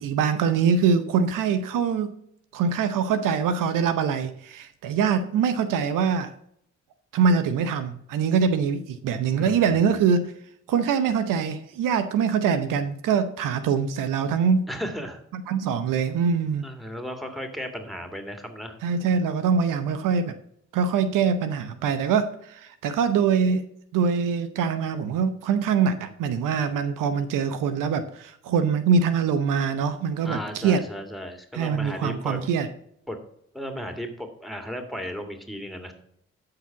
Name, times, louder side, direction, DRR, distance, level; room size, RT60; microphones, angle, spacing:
voice 1, 0.0-2.2 2.5-6.3 7.1-10.3 10.7-14.7 15.3-16.7 18.8-20.3 20.7-23.6 23.9-30.8 31.5-32.7, right 6 dB, 80° right, 0.8 m, -23 dB
voice 2, 9.3-9.8 14.7-15.2 16.6-18.8 30.2-32.4 33.1-33.2 33.5-35.9, equal, ahead, 2.7 m, -35 dB
12.5 x 4.9 x 5.9 m
hypercardioid pair, 40°, 32 cm